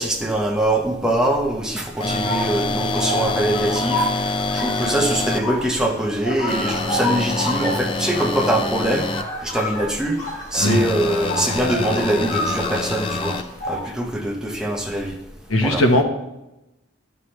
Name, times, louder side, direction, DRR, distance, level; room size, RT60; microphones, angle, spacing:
voice 1, 0.0-9.1 9.4-13.4 13.7-15.2 15.6-15.8, right 1 dB, 5° right, 0 dB, 0.9 m, -23 dB
sound 1, 2.0-5.4 6.5-9.2 10.5-13.4, left 2 dB, 25° left, 0.3 m, -26 dB
sound 2, 2.1-13.8, left 1 dB, 50° left, 3.2 m, -30 dB
voice 2, 15.5-16.0, left 1 dB, 85° left, 3 dB, 1.3 m, -17 dB
13.0 x 5.6 x 3.2 m, 0.93 s
head